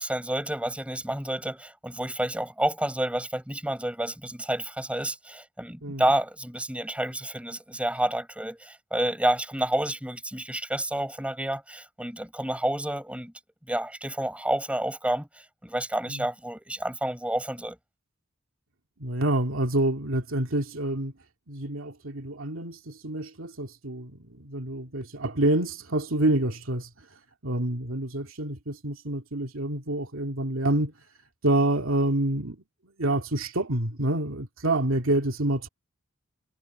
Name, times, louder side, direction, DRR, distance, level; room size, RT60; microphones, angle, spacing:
voice 1, 0.0-13.3 13.7-17.8, right 1 dB, 5° right, 6.9 m, -29 dB
voice 2, 19.0-21.1 21.5-26.9 27.4-30.9 31.4-32.6 33.0-35.7, right 1 dB, 80° right, 2.4 m, -27 dB
head